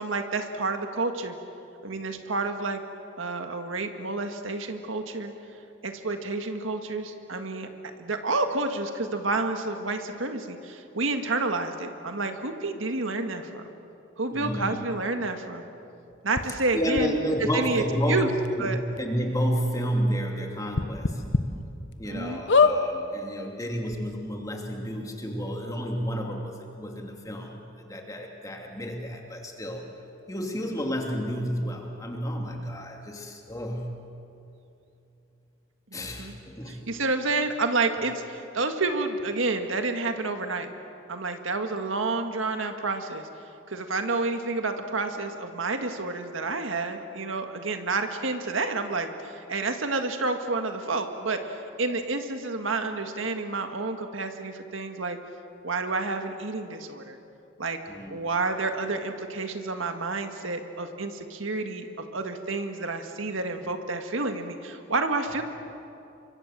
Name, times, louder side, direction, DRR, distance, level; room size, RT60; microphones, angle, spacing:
voice 1, 0.0-1.4 1.8-2.8 3.2-5.3 5.8-7.7 8.0-13.6 14.2-15.7 16.2-17.1 17.5-18.3 18.6-18.8 22.0-22.4 35.9-36.3 36.7-40.7 41.1-43.3 43.7-55.2 55.6-57.2 57.6-57.8 58.1-65.4, right 3 dB, 85° right, 6 dB, 1.8 m, -29 dB
voice 2, 14.3-14.8 16.7-18.3 18.6-21.2 22.0-29.9 30.3-34.0 35.9-36.9 57.9-58.3, equal, 15° left, 1 dB, 2.7 m, -31 dB
sound 1, 16.4-16.5 17.0-17.1 18.0-18.1 18.4-18.5 19.0-19.1 20.7-21.4 21.9-22.0 22.5-22.8 23.6-23.7 23.9-24.0, left 4 dB, 65° left, 1.1 m, -21 dB
29.0 x 24.5 x 7.5 m, 2.7 s
head